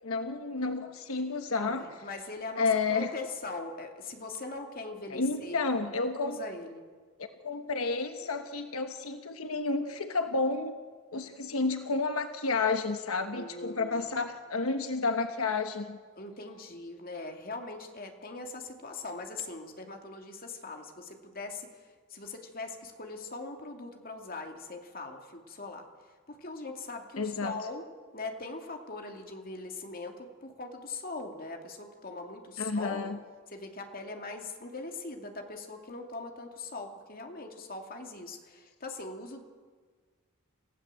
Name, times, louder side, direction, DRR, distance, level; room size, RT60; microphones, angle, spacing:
voice 1, 0.0-1.9 2.6-3.1 5.1-6.4 7.4-10.7 11.1-16.0 27.2-27.7 32.6-33.2, left 3 dB, 85° left, 7 dB, 1.2 m, -31 dB
voice 2, 1.6-5.6 6.1-6.8 13.3-14.0 16.2-21.7 22.1-25.8 26.3-27.8 28.1-33.1 33.5-39.4, left 3 dB, 45° left, 3 dB, 2.6 m, -41 dB
28.0 x 16.0 x 7.6 m, 1.5 s
head